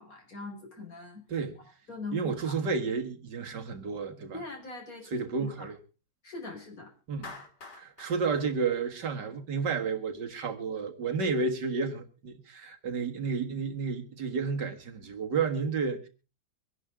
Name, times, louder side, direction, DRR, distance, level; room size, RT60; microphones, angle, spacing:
voice 1, 0.0-1.2 1.9-2.6 4.3-5.7 6.2-6.9, left 3 dB, 50° left, 5.9 m, -41 dB
voice 2, 2.1-4.4 5.1-5.8 7.1-7.4 7.7-16.1, right 5 dB, 70° right, 2.3 m, -31 dB
Clapping, 7.2-9.5, left 3 dB, 70° left, 3.2 m, -47 dB
24.5 x 11.0 x 3.5 m
omnidirectional pair, 1.9 m